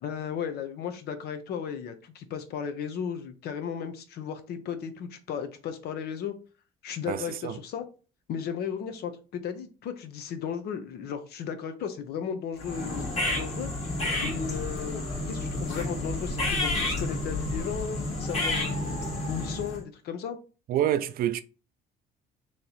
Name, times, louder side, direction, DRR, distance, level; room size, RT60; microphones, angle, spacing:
voice 1, 0.0-6.3 6.8-7.9 8.3-13.0 13.3-13.7 14.2-19.0 19.3-20.4, left 7 dB, 70° left, 0.8 m, -35 dB
voice 2, 7.1-7.6 20.7-21.4, right 11 dB, 60° right, 0.4 m, -27 dB
sound 1, 12.6-19.8, left 2 dB, 40° left, 1.5 m, -30 dB
3.2 x 2.9 x 4.0 m
cardioid pair, 110°, 17 cm